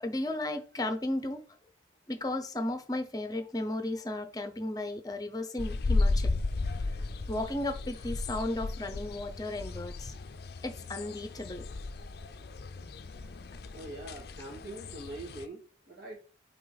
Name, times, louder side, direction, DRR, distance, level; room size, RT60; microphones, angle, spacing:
voice 1, 0.0-1.4 2.1-6.3 7.3-10.1 10.6-11.6, left 1 dB, 20° left, 0.7 m, -34 dB
Escadaria do Rosarinho, 5.6-15.5, left 2 dB, 55° left, 0.5 m, -34 dB
voice 2, 13.7-16.2, right 1 dB, 65° right, 2.2 m, -43 dB
6.1 x 4.3 x 4.0 m
head